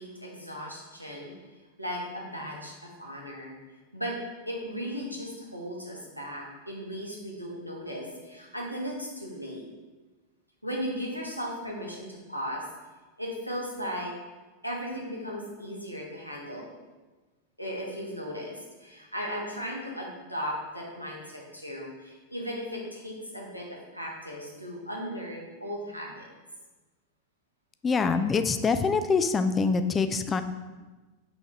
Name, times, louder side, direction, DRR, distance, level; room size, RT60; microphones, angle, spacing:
voice 1, 0.0-1.3 1.8-3.6 3.9-4.2 4.5-9.6 10.6-12.6 13.2-14.1 14.6-16.7 17.6-26.3, equal, 90° left, -2 dB, 1.2 m, -36 dB
voice 2, 27.8-30.4, left 4 dB, 20° left, 9 dB, 0.4 m, -25 dB
5.7 x 4.1 x 4.9 m, 1.2 s
figure-of-eight pair, 90°, 0 cm